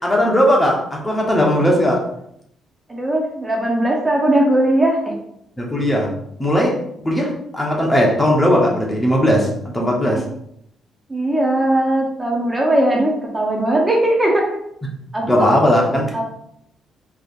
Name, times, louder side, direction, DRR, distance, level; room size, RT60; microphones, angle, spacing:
voice 1, 0.0-2.1 5.6-6.1 6.4-6.8 7.0-10.2 15.2-16.2, equal, 15° left, -2 dB, 1.1 m, -17 dB
voice 2, 2.9-5.1 10.1-10.2 11.1-14.5 15.1-15.5 16.1-16.2, right 1 dB, 20° right, -1 dB, 1.0 m, -18 dB
4.6 x 3.3 x 2.6 m, 0.73 s
cardioid pair, 90°, 0 cm